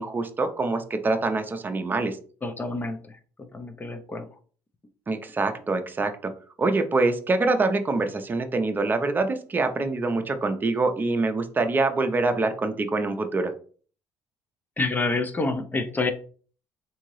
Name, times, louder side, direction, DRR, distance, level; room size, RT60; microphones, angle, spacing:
voice 1, 0.0-2.2 5.1-6.3 6.6-13.5, right 3 dB, 25° right, 6 dB, 0.6 m, -25 dB
voice 2, 2.4-3.0 3.4-4.3 14.8-16.1, left 3 dB, 25° left, 8 dB, 0.6 m, -28 dB
3.6 x 2.7 x 3.1 m, 0.42 s
supercardioid pair, 80°, 8 cm